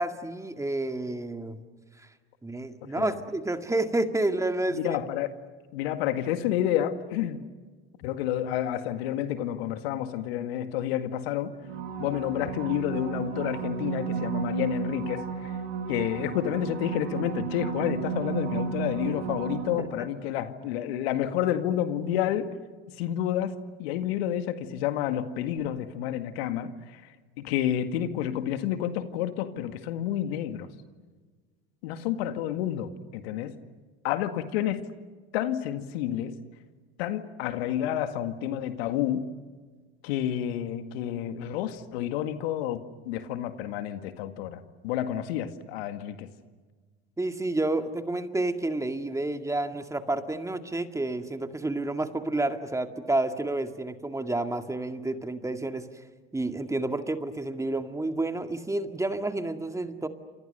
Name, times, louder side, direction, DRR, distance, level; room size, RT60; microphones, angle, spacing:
voice 1, 0.0-1.6 2.0-2.1 2.4-5.0 19.8-19.9 47.2-55.9 56.3-60.1, right 2 dB, 10° right, 7 dB, 2.0 m, -30 dB
voice 2, 4.7-5.3 5.7-7.4 8.0-11.5 12.0-15.6 15.9-22.6 23.0-30.7 31.8-33.5 34.0-34.8 35.3-36.3 37.0-39.3 40.0-46.3, left 11 dB, 70° left, 9 dB, 2.0 m, -30 dB
sound 1, 11.6-20.2 25.6-25.7, right 6 dB, 75° right, 5.0 m, -33 dB
29.5 x 27.0 x 6.7 m, 1.4 s
hypercardioid pair, 85°, 32 cm